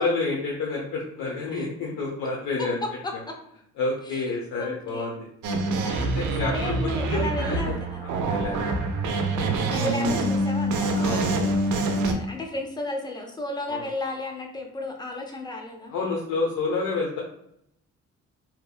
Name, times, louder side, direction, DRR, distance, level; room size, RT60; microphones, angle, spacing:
voice 1, 0.0-2.8 3.8-5.2 6.1-7.8 8.0-8.6 11.0-11.4 13.7-13.8 15.9-17.2, left 3 dB, 80° left, -2 dB, 0.6 m, -29 dB
voice 2, 2.6-3.4 4.0-5.2 5.8-8.0 9.4-15.9, left 2 dB, 15° left, 2 dB, 0.5 m, -34 dB
sound 1, 5.4-12.1, right 2 dB, 80° right, 0.5 m, -25 dB
2.7 x 2.1 x 2.3 m, 0.74 s
cardioid pair, 90°, 30 cm